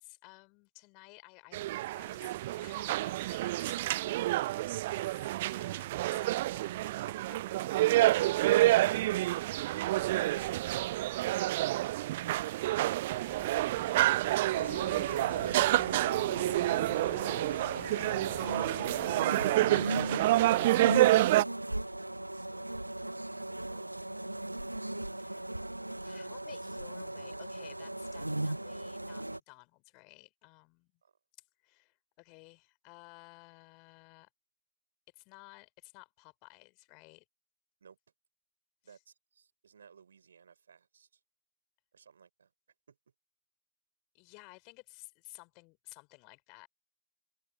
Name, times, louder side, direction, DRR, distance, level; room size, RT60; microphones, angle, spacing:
voice 1, 0.0-1.7 2.0-8.2 18.3-18.6 25.2-25.5 26.0-30.9 31.6-34.3 35.1-37.3 38.8-39.0 44.1-46.7, left 32 dB, 45° left, 5.2 m, -56 dB
sound 1, 1.5-21.4, right 16 dB, 55° right, 0.4 m, -28 dB
sound 2, 13.1-19.2, left 2 dB, 5° left, 6.9 m, -54 dB
sound 3, 14.5-29.4, right 1 dB, 85° right, 1.3 m, -38 dB
voice 2, 14.6-15.0 19.4-22.9 23.2-24.3 31.0-31.1 37.8-38.0 38.8-41.2 41.9-42.5 42.9-43.0, right 6 dB, 70° right, 5.2 m, -56 dB
open air
figure-of-eight pair, 90°, 0 cm